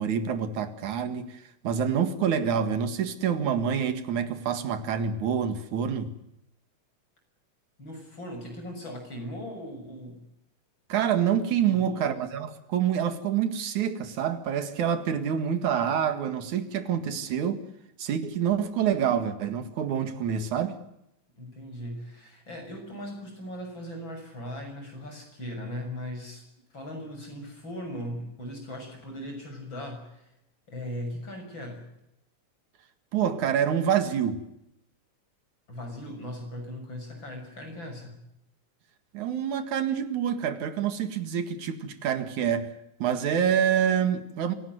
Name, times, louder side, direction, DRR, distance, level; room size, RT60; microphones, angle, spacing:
voice 1, 0.0-6.1 10.9-17.6 18.0-20.8 33.1-34.4 39.1-42.7 43.0-44.5, right 8 dB, 80° right, 3.2 m, -27 dB
voice 2, 7.8-10.2 11.7-12.1 21.4-26.5 26.7-30.3 30.7-31.8 35.7-38.2, equal, 40° left, 7.4 m, -38 dB
25.5 x 17.5 x 9.5 m
omnidirectional pair, 3.4 m